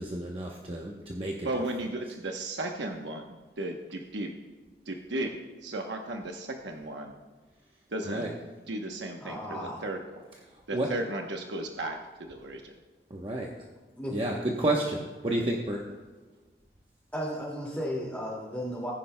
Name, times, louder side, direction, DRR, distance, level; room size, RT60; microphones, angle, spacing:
voice 1, 0.0-1.6 2.0-2.1 8.0-8.3 10.3-10.9 13.1-13.5 14.1-15.8, right 1 dB, 30° right, -1 dB, 0.9 m, -31 dB
voice 2, 1.4-4.3 4.9-5.3 5.6-7.1 7.9-8.4 8.7-10.0 10.7-12.7, right 1 dB, 85° right, 3 dB, 1.0 m, -35 dB
voice 3, 9.2-9.8 14.0-14.2 17.1-18.9, equal, 10° left, -6 dB, 2.2 m, -34 dB
20.5 x 10.5 x 2.2 m, 1.3 s
head